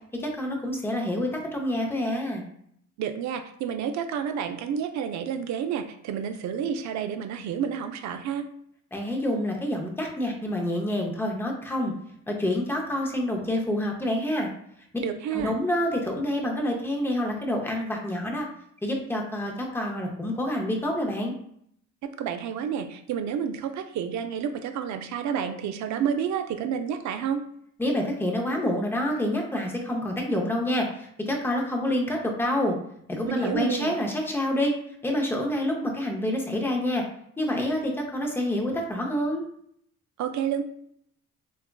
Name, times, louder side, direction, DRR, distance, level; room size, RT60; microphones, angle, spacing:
voice 1, 0.2-2.4 8.9-11.9 12.3-14.5 15.3-18.5 18.8-21.3 27.8-32.8 33.1-34.7 35.0-37.0 37.4-39.4, left 1 dB, 10° left, 1 dB, 0.6 m, -27 dB
voice 2, 3.0-8.5 15.0-15.6 22.0-27.4 33.3-34.0 40.2-40.6, right 8 dB, 70° right, 8 dB, 0.5 m, -30 dB
3.4 x 2.3 x 2.2 m, 0.69 s
cardioid pair, 90°, 30 cm